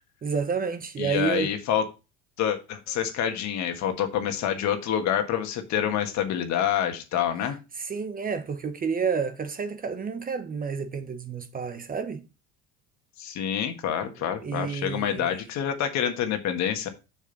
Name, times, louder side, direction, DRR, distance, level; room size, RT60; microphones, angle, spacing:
voice 1, 0.2-1.5 7.8-12.2 14.4-15.4, right 5 dB, 25° right, 0.9 m, -30 dB
voice 2, 1.0-1.9 2.4-7.6 13.2-16.9, left 9 dB, 55° left, 1.5 m, -27 dB
7.0 x 6.3 x 3.9 m
supercardioid pair, 110°, 34 cm